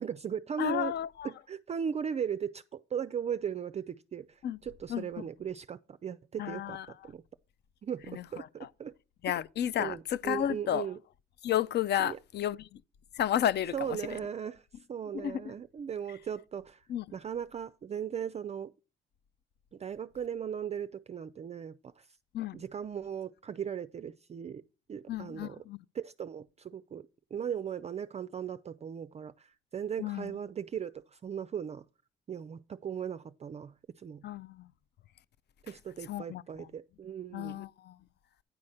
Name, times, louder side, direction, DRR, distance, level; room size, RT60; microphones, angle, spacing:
voice 1, 0.0-0.9 1.2-7.2 7.8-8.9 9.8-11.0 12.0-12.2 13.7-16.8 17.1-18.7 19.7-22.1 22.5-24.6 24.9-25.6 25.9-31.8 32.3-34.2 35.6-37.6, right 8 dB, 35° right, 0.4 m, -38 dB
voice 2, 0.6-1.3 4.4-4.6 4.9-5.1 6.4-6.9 8.1-8.2 8.6-8.7 9.2-10.9 11.4-12.8 13.1-14.0 15.1-15.5 16.9-17.0 22.3-22.6 25.1-25.8 30.0-30.3 34.2-34.7 36.1-36.7 37.3-38.0, left 10 dB, 60° left, 0.5 m, -32 dB
9.6 x 4.2 x 6.4 m
cardioid pair, 90°, 20 cm